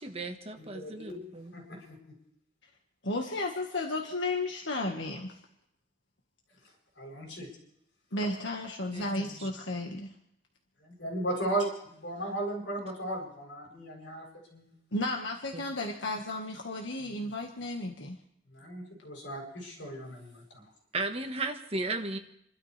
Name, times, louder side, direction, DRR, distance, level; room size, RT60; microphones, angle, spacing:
voice 1, 0.0-1.6 8.9-9.5 15.5-15.6 20.9-22.2, right 3 dB, 35° right, 5 dB, 1.4 m, -35 dB
voice 2, 0.6-1.9 7.0-7.5 10.8-11.7 12.0-14.2 14.5-14.7 18.5-20.4, right 1 dB, 70° left, -1 dB, 7.9 m, -36 dB
voice 3, 3.0-5.4 8.1-10.1 14.9-18.2, left 2 dB, 85° left, 1 dB, 1.6 m, -33 dB
30.0 x 12.5 x 3.4 m, 0.76 s
head